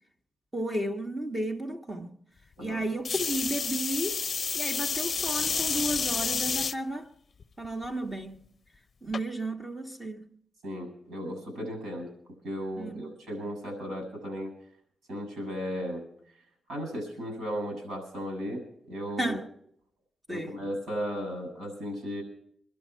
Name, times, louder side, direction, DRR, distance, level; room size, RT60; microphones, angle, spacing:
voice 1, 0.5-2.1 2.6-4.2 4.5-7.1 7.6-8.4 9.0-10.3 12.8-13.1 19.2-19.5 20.3-20.6, right 1 dB, 15° right, 1.6 m, -33 dB
sound 1, 3.0-6.7 7.4-7.9 9.1-9.2, left 5 dB, 45° left, 0.6 m, -30 dB
voice 2, 10.6-12.1 12.4-14.5 15.1-16.0 16.7-18.6 18.9-19.4 20.3-22.2, equal, 80° right, 7.6 m, -35 dB
25.0 x 12.0 x 4.7 m
cardioid pair, 90°, 0 cm